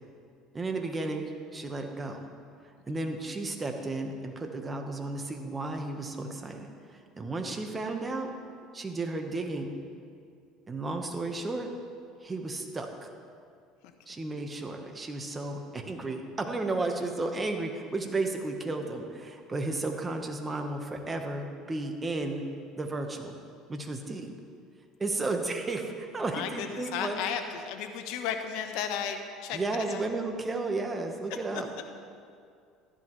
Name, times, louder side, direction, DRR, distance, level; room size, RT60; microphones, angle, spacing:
voice 1, 0.5-2.3 2.9-8.3 8.7-9.8 10.7-11.7 12.2-13.1 14.1-22.4 22.8-23.4 23.7-24.3 25.0-27.2 29.5-31.7, right 2 dB, 20° right, 4 dB, 1.2 m, -33 dB
voice 2, 26.3-26.7 26.9-29.6 29.9-30.1 31.8-31.9, left 8 dB, 75° left, 6 dB, 1.0 m, -34 dB
14.0 x 11.0 x 3.2 m, 2.3 s
supercardioid pair, 100°, 0 cm